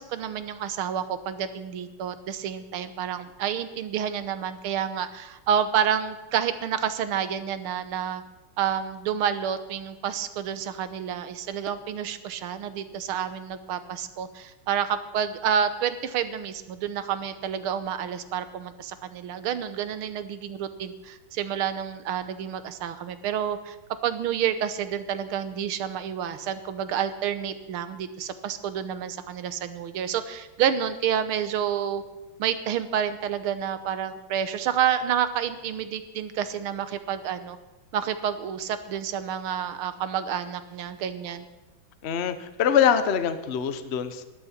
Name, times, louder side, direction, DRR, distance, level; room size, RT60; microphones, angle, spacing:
voice 1, 0.0-8.2 8.6-23.8 24.0-32.0 32.4-37.6 37.9-41.5, right 9 dB, 85° right, 11 dB, 1.9 m, -29 dB
voice 2, 42.0-44.2, left 8 dB, 45° left, 10 dB, 0.8 m, -24 dB
19.5 x 12.0 x 4.4 m, 1.1 s
omnidirectional pair, 2.3 m